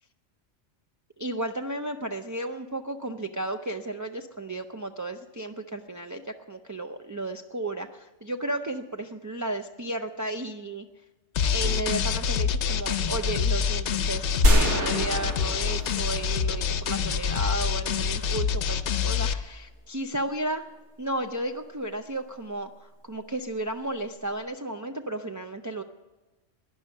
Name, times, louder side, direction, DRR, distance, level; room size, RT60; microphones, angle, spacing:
voice 1, 1.2-10.8 11.5-18.8 19.0-20.6 21.0-25.8, right 1 dB, 30° right, 4 dB, 0.3 m, -33 dB
sound 1, 11.4-19.3, left 7 dB, 65° left, 0.9 m, -26 dB
sound 2, 14.4-16.8, equal, 65° right, 2.0 m, -25 dB
12.0 x 10.5 x 9.7 m, 1.2 s
omnidirectional pair, 1.3 m